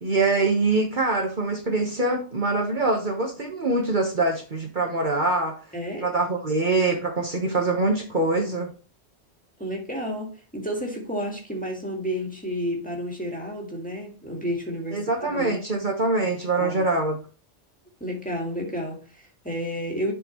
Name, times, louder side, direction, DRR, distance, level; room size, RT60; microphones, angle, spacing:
voice 1, 0.0-5.6 6.0-8.7 14.9-17.2, right 3 dB, 45° right, 1.2 m, -24 dB
voice 2, 5.7-6.1 9.6-15.6 16.6-16.9 18.0-20.1, equal, 5° left, 1.7 m, -31 dB
10.5 x 4.3 x 2.9 m
omnidirectional pair, 1.2 m